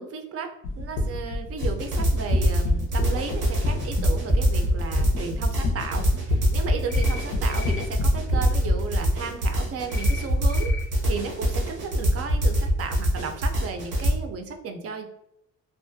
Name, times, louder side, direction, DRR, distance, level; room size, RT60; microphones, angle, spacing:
voice 1, 0.0-10.7 11.1-15.0, right 5 dB, 50° right, 5 dB, 0.4 m, -34 dB
sound 1, 0.6-8.9, left 2 dB, 90° left, 0.6 m, -28 dB
sound 2, 1.6-14.1, equal, 90° right, 0.8 m, -23 dB
sound 3, 6.9-7.2 7.5-7.8 9.9-10.2 10.5-10.8, left 5 dB, 5° left, 0.7 m, -38 dB
2.3 x 2.1 x 2.5 m, 0.79 s
cardioid pair, 90°, 30 cm